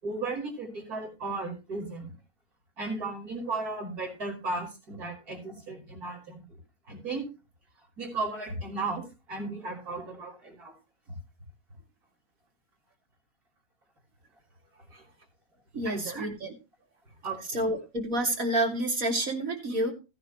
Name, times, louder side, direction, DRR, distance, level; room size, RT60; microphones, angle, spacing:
voice 1, 0.0-2.1 2.8-6.4 6.9-7.2 8.0-9.0 9.3-10.7 15.8-16.3 17.2-17.6, right 3 dB, 75° right, 0 dB, 5.7 m, -35 dB
voice 2, 15.7-16.5 17.5-19.9, right 1 dB, 60° right, 2 dB, 3.1 m, -29 dB
16.5 x 10.0 x 3.1 m, 0.29 s
omnidirectional pair, 1.6 m